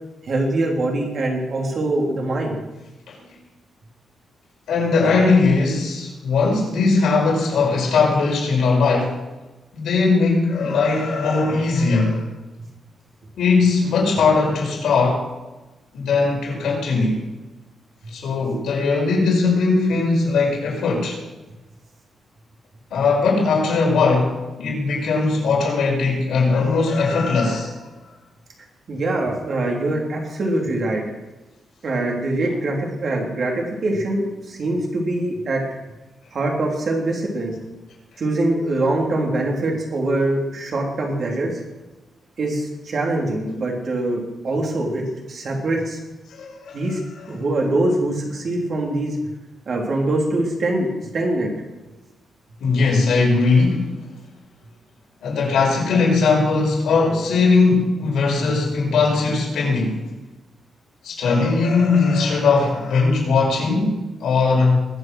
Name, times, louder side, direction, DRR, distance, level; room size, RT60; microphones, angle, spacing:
voice 1, 0.2-2.5 28.9-31.0 31.8-35.6 36.3-37.5 38.2-41.6 42.4-45.0 45.3-46.0 46.7-47.0 47.3-49.2 49.7-50.9 51.1-51.5, right 2 dB, 45° right, 0 dB, 3.4 m, -23 dB
voice 2, 4.7-9.2 9.7-12.3 13.4-15.2 15.9-17.2 18.1-21.2 22.9-27.7 46.3-46.9 52.6-53.9 55.2-60.0 61.0-64.9, left 4 dB, 80° left, -1 dB, 5.4 m, -19 dB
21.5 x 8.0 x 6.2 m, 1.1 s
wide cardioid pair, 170°, 0 cm